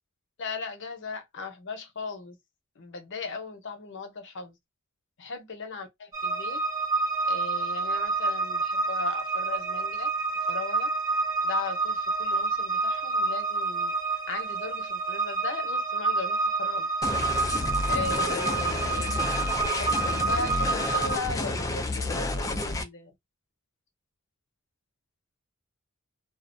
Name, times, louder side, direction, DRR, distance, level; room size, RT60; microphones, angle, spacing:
voice 1, 0.4-2.4 2.8-4.6 5.2-6.6 7.3-10.1 10.5-10.9 11.4-13.9 14.3-16.9 17.9-23.1, left 4 dB, 55° left, 0.7 m, -38 dB
sound 1, 6.1-21.2, right 3 dB, 15° right, 0.8 m, -28 dB
sound 2, 17.0-22.8, left 2 dB, 15° left, 0.3 m, -30 dB
2.3 x 2.1 x 2.5 m
head